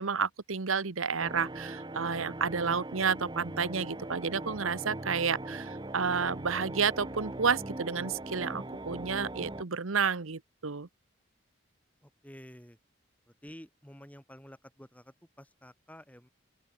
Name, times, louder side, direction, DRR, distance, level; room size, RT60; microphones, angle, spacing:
voice 1, 0.0-10.9, right 5 dB, 85° right, 1.1 m, -31 dB
sound 1, 1.2-9.6, right 1 dB, 20° right, 0.9 m, -40 dB
voice 2, 12.0-12.8 13.4-16.3, equal, 5° left, 5.5 m, -51 dB
open air
head